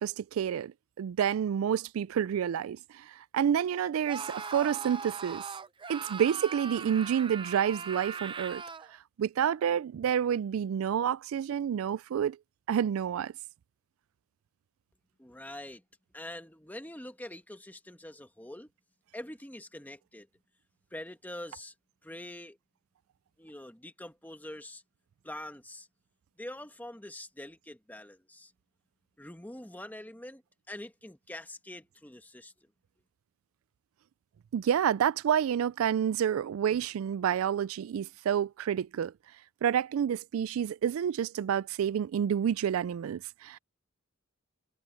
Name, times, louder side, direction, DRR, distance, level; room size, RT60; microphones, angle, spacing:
voice 1, 0.0-5.4 5.9-8.6 9.2-12.4 12.7-13.3 34.5-39.1 39.6-43.6, right 8 dB, 90° right, 0.3 m, -29 dB
Screaming, 4.1-8.9, right 5 dB, 25° right, 0.7 m, -40 dB
voice 2, 15.2-15.8 16.1-18.7 19.1-20.3 20.9-21.7 22.0-22.6 23.4-24.8 25.2-25.9 26.4-28.5 29.2-30.4 30.7-32.7, left 1 dB, 10° left, 1.3 m, -44 dB
head